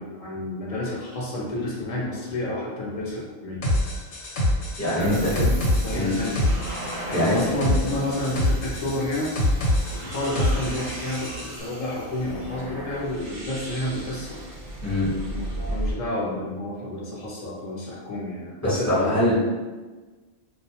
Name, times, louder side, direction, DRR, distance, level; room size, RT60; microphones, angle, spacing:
voice 1, 0.0-3.6 5.0-5.5 5.8-6.4 7.1-9.3 9.9-14.4 15.3-19.2, left 1 dB, 50° left, -4 dB, 0.5 m, -30 dB
sound 1, 3.6-11.5, left 1 dB, 85° left, 0.9 m, -25 dB
voice 2, 4.8-5.3 5.9-6.1 7.1-7.4 14.8-15.1 18.6-19.4, left 1 dB, 15° left, -10 dB, 0.9 m, -22 dB
sound 2, 5.0-15.9, right 1 dB, 55° right, 0.6 m, -35 dB
2.3 x 2.1 x 2.8 m, 1.3 s
omnidirectional pair, 1.2 m